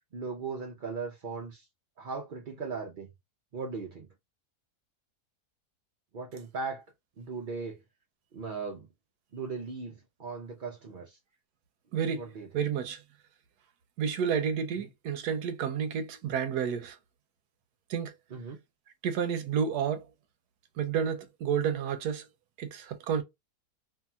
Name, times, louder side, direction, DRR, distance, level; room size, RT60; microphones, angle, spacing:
voice 1, 0.1-1.7 2.0-3.1 3.5-4.1 6.1-6.8 7.2-7.8 8.3-8.9 9.3-11.2 12.2-12.5 14.8-14.9 18.3-18.6, right 4 dB, 60° right, 0.5 m, -38 dB
voice 2, 11.9-12.2 12.5-13.0 14.0-17.0 17.9-18.1 19.0-20.0 20.8-22.3 22.6-23.2, right 7 dB, 80° right, 1.1 m, -30 dB
2.7 x 2.7 x 2.3 m
omnidirectional pair, 1.7 m